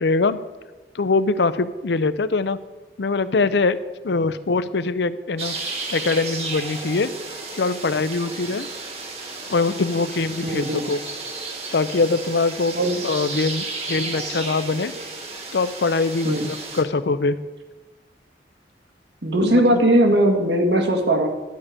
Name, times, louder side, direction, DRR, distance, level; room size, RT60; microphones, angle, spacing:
voice 1, 0.0-0.4 0.9-2.6 3.0-3.8 4.0-5.6 5.9-7.1 7.6-8.7 9.5-11.0 11.7-12.8 13.0-14.9 15.5-17.4 19.4-19.8, left 3 dB, 80° left, 13 dB, 0.6 m, -22 dB
sound 1, 5.4-16.8, right 3 dB, 35° right, 1.4 m, -33 dB
voice 2, 10.4-10.8 12.7-13.0 16.2-16.4 19.2-21.3, right 1 dB, 80° right, 2 dB, 1.8 m, -19 dB
11.5 x 5.1 x 8.4 m, 1.2 s
head